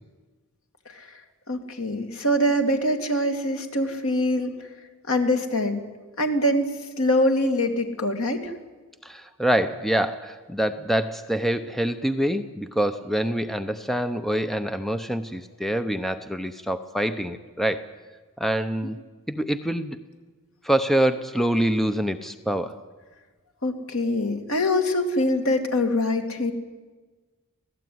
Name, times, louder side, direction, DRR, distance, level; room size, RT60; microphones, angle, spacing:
voice 1, 1.5-4.5 5.1-5.8 6.2-8.5 23.6-26.5, left 1 dB, 70° left, 5 dB, 2.7 m, -24 dB
voice 2, 9.0-17.9 18.4-19.0 19.3-20.0 20.6-22.8, right 1 dB, ahead, 9 dB, 0.7 m, -25 dB
26.5 x 17.5 x 9.5 m, 1.3 s
head